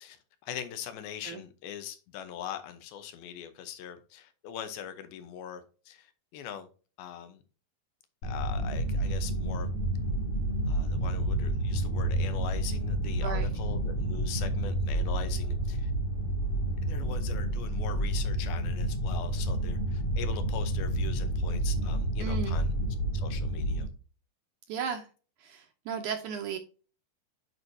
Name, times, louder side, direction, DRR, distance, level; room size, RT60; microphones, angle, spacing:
voice 1, 0.0-6.7 7.0-7.4 8.2-9.8 10.7-15.9 16.9-22.7 23.1-23.9, left 9 dB, 90° left, 2.8 m, -42 dB
sound 1, 8.2-23.9, right 1 dB, 70° left, 3.6 m, -30 dB
voice 2, 13.1-13.5 22.2-22.6 24.7-25.1 25.4-26.6, right 6 dB, 75° right, 2.0 m, -35 dB
9.2 x 4.6 x 2.7 m
omnidirectional pair, 4.2 m